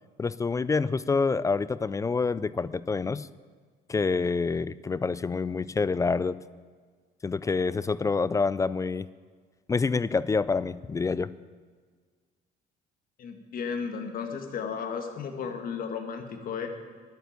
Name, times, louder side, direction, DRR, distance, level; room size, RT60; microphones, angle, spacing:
voice 1, 0.2-3.3 3.9-6.4 7.2-9.1 9.7-11.3, left 4 dB, 20° left, 18 dB, 0.3 m, -27 dB
voice 2, 13.2-16.7, left 6 dB, 55° left, 5 dB, 1.8 m, -34 dB
11.0 x 9.3 x 9.1 m, 1.6 s
cardioid pair, 110°, 17 cm